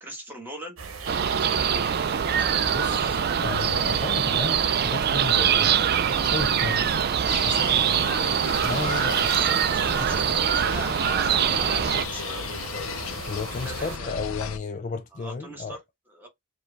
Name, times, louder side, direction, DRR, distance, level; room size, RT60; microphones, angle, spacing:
voice 1, 0.0-0.8 1.1-3.0 9.2-12.7 13.5-14.1 15.1-16.3, right 1 dB, 10° right, 1.3 m, -40 dB
sound 1, 0.8-14.0, right 5 dB, 90° right, 0.9 m, -37 dB
sound 2, 1.1-12.0, right 8 dB, 50° right, 0.4 m, -23 dB
voice 2, 2.7-3.2 3.4-5.7 6.2-7.0 7.4-7.9 8.6-9.2 13.3-15.8, left 4 dB, 40° left, 0.4 m, -33 dB
sound 3, 7.3-14.6, left 6 dB, 85° left, 0.6 m, -36 dB
4.7 x 2.4 x 3.3 m
head